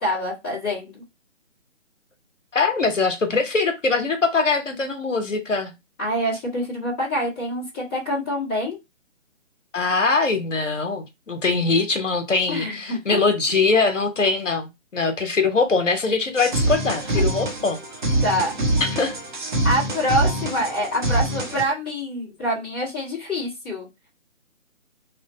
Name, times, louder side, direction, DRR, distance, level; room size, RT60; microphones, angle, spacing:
voice 1, 0.0-1.0 6.0-8.8 12.5-13.2 17.1-17.2 18.2-18.5 19.6-23.9, equal, 10° left, 0.8 m, -26 dB
voice 2, 2.5-5.7 9.7-17.8 18.8-19.1, left 4 dB, 70° left, 1.0 m, -22 dB
sound 1, 16.4-21.6, right 1 dB, 40° right, 0.7 m, -24 dB
3.2 x 2.2 x 4.0 m
figure-of-eight pair, 145°, 39 cm